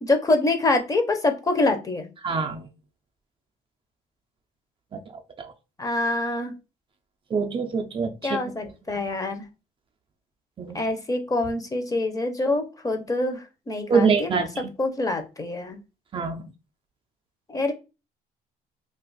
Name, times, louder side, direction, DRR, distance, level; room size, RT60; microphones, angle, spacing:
voice 1, 0.0-2.1 5.8-6.5 8.2-9.5 10.7-15.8 17.5-17.7, left 2 dB, 20° left, 0.6 m, -25 dB
voice 2, 2.2-2.7 4.9-5.5 7.3-8.4 10.6-10.8 13.9-14.7 16.1-16.4, right 5 dB, 30° right, 0.4 m, -25 dB
2.4 x 2.3 x 3.9 m
cardioid pair, 110°, 17 cm